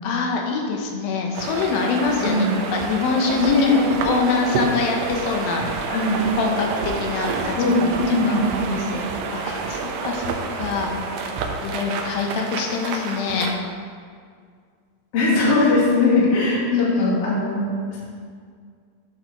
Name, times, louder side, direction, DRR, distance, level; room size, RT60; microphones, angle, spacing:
voice 1, 0.0-5.6 6.4-7.8 8.1-9.0 9.3-10.9 11.6-13.5 16.7-17.2, left 5 dB, 90° left, 2 dB, 2.8 m, -25 dB
sound 1, 1.3-13.6, right 4 dB, 80° right, 2.2 m, -28 dB
voice 2, 2.2-2.6 3.4-3.8 5.9-6.2 7.6-8.9 15.1-17.6, left 2 dB, 50° left, -5 dB, 2.4 m, -20 dB
10.5 x 6.8 x 3.0 m, 2.1 s
omnidirectional pair, 4.1 m